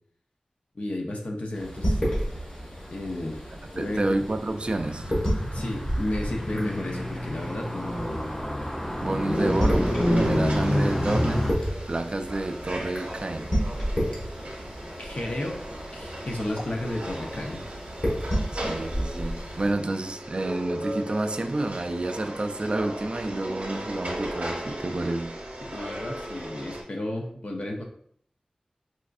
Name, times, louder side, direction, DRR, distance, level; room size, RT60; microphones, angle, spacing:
voice 1, 0.7-2.0 2.9-3.4 3.7-4.2 5.5-8.2 15.0-15.6 15.9-17.6 25.7-27.8, left 1 dB, 65° left, 0.6 m, -33 dB
sound 1, 1.5-19.7, equal, 35° left, 1.3 m, -32 dB
voice 2, 3.8-5.1 9.0-11.5 11.9-13.6 18.5-25.4, right 2 dB, 45° right, 0.3 m, -29 dB
Car, 4.6-11.5, equal, 15° left, 0.5 m, -28 dB
sound 2, 9.3-26.8, right 1 dB, 70° right, 0.8 m, -37 dB
4.1 x 2.5 x 2.4 m
wide cardioid pair, 75°, 2 cm